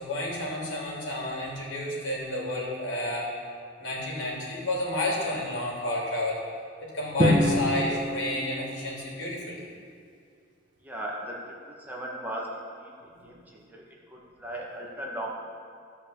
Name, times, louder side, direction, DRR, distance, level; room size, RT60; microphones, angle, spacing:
voice 1, 0.0-3.3 3.8-6.4 6.9-9.6, left 1 dB, 80° left, -4 dB, 3.3 m, -31 dB
Drum, 7.2-9.3, left 1 dB, 25° right, 1.5 m, -26 dB
voice 2, 10.8-11.4 11.9-12.9 13.2-13.8 14.1-15.3, right 1 dB, 10° right, -4 dB, 1.5 m, -37 dB
14.5 x 5.5 x 7.3 m, 2.3 s
head